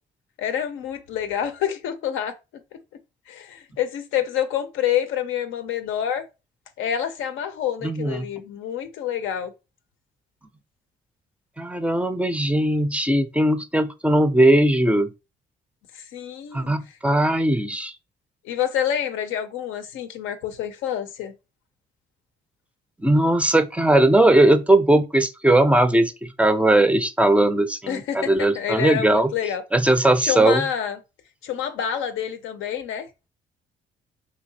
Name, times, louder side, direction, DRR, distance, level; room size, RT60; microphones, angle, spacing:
voice 1, 0.4-2.4 3.3-6.2 6.8-9.5 15.9-16.7 18.4-21.3 27.9-29.6 30.2-31.0 31.4-33.1, left 9 dB, 85° left, 0.5 m, -27 dB
voice 2, 7.8-8.3 11.6-15.1 16.5-17.9 23.0-29.3 29.7-30.6, right 1 dB, 5° right, 0.4 m, -19 dB
3.2 x 2.7 x 2.7 m
cardioid pair, 90°, 20 cm